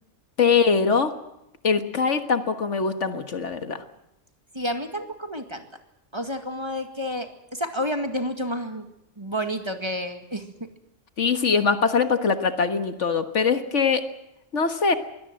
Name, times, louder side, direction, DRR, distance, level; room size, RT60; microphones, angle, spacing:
voice 1, 0.4-1.1 1.6-3.8 11.2-14.0 14.5-14.9, left 5 dB, 70° left, 8 dB, 1.8 m, -22 dB
voice 2, 4.5-5.7 6.1-8.9 9.2-10.5, equal, 20° right, 6 dB, 2.1 m, -30 dB
22.5 x 18.0 x 7.7 m, 0.86 s
omnidirectional pair, 1.3 m